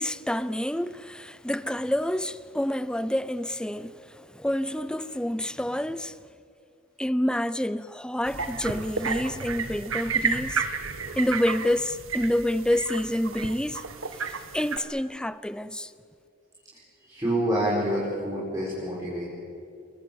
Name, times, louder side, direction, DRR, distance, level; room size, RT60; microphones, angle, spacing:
voice 1, 0.0-6.2 7.0-10.7 11.2-13.8 14.3-15.9, left 1 dB, 5° left, 0.6 m, -28 dB
sound 1, 8.3-14.8, right 5 dB, 75° right, 1.6 m, -32 dB
voice 2, 17.0-19.3, right 1 dB, 15° right, 5.5 m, -27 dB
28.0 x 23.5 x 7.2 m
head